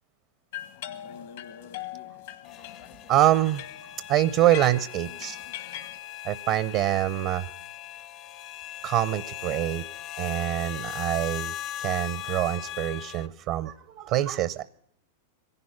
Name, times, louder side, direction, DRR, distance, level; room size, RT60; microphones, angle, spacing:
sound 1, 0.5-6.0, left 11 dB, 70° left, 1.4 m, -41 dB
sound 2, 2.4-13.3, left 12 dB, 40° left, 0.6 m, -39 dB
voice 1, 3.1-3.6 4.1-5.4 6.2-7.5 8.8-9.8 10.2-11.5 11.8-14.6, right 13 dB, 50° right, 15 dB, 0.6 m, -25 dB
23.0 x 11.0 x 5.7 m, 0.71 s
hypercardioid pair, 120°, 0 cm